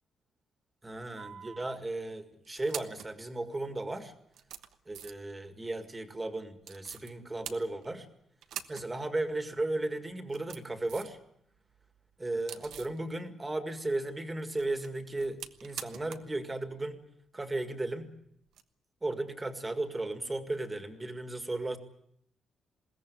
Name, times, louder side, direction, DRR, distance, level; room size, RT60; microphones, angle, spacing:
voice 1, 0.8-4.1 4.9-8.1 8.7-11.2 12.2-17.0 17.3-18.1 19.0-21.8, right 2 dB, 15° right, 8 dB, 1.9 m, -35 dB
sound 1, 1.2-1.8 2.4-3.1 3.9-4.0 4.3-5.3 6.6-7.1 7.4-8.1 8.4-8.9 9.2-9.3 10.1-11.2 11.5-13.0 14.4-16.3 16.6-16.7 18.5-18.6, right 9 dB, 90° right, 1.2 m, -45 dB
21.5 x 17.0 x 9.6 m, 0.74 s
cardioid pair, 175°, 0 cm